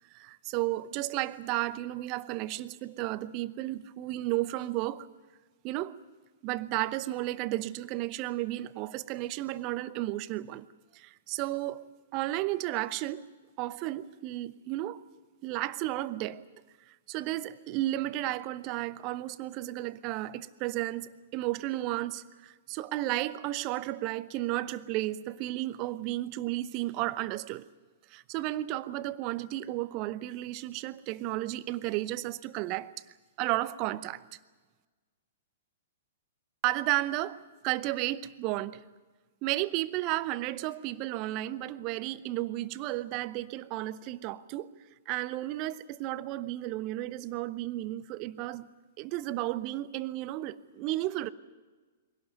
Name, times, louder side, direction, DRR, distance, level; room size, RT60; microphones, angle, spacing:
voice 1, 0.1-5.1 5.6-6.0 6.4-10.7 10.9-11.9 12.1-13.2 13.6-15.0 15.4-16.4 16.9-27.6 28.1-32.9 33.4-34.2 36.6-38.8 39.4-44.7 45.1-48.7 49.0-51.3, right 16 dB, 35° right, 0.9 m, -33 dB
23.5 x 17.5 x 9.3 m
figure-of-eight pair, 110°, 0 cm